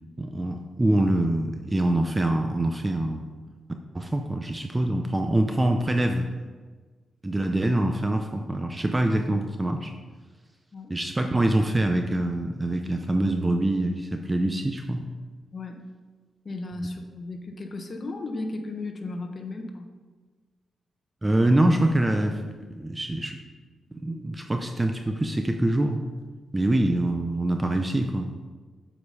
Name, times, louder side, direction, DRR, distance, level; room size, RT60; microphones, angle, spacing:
voice 1, 0.2-3.3 3.9-6.3 7.2-9.9 10.9-15.0 21.2-22.4 22.7-23.4 24.0-26.0 26.5-28.3, right 1 dB, 15° right, 4 dB, 0.6 m, -24 dB
voice 2, 15.5-15.8 16.4-19.9, left 2 dB, 40° left, 4 dB, 1.1 m, -35 dB
8.1 x 5.0 x 5.5 m, 1.4 s
cardioid pair, 95°, 0 cm